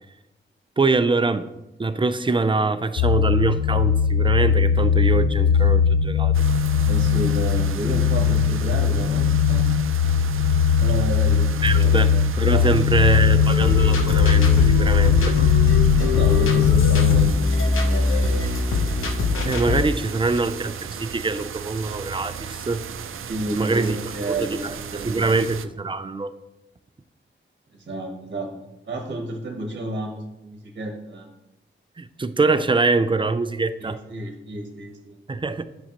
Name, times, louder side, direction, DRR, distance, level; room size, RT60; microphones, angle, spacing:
voice 1, 0.8-1.5 1.8-6.4 11.6-12.1 12.4-15.4 19.4-22.8 23.5-24.0 24.2-24.5 24.9-26.3 32.0-34.0 35.3-35.6, right 3 dB, 25° right, 11 dB, 0.4 m, -24 dB
sound 1, 3.0-17.3, left 7 dB, 70° left, 0.4 m, -19 dB
sound 2, 6.3-25.7, right 7 dB, 85° right, 0.5 m, -36 dB
voice 2, 6.9-9.6 10.8-12.2 12.5-12.7 16.0-18.1 23.3-25.3 27.7-28.5 28.8-31.3 33.8-35.2, right 2 dB, 50° right, 2 dB, 1.1 m, -31 dB
sound 3, 13.3-19.8, left 3 dB, 90° left, 0.9 m, -23 dB
10.0 x 6.2 x 3.0 m, 0.94 s
wide cardioid pair, 110°, 21 cm